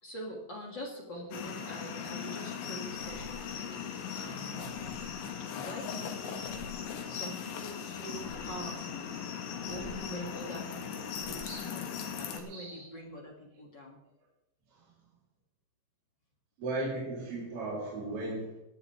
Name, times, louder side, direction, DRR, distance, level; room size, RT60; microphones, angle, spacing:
voice 1, 0.0-3.9 4.1-4.8 5.6-6.6 7.1-9.1 9.6-11.9 12.1-14.0, equal, 30° left, -1 dB, 2.6 m, -44 dB
sound 1, 1.3-12.4, left 7 dB, 85° left, 4.1 m, -39 dB
sound 2, 2.7-12.6, left 1 dB, 15° right, 5.0 m, -54 dB
voice 2, 12.5-12.8 16.6-18.6, right 2 dB, 60° right, -7 dB, 5.8 m, -36 dB
19.0 x 14.0 x 3.6 m, 0.90 s
omnidirectional pair, 5.2 m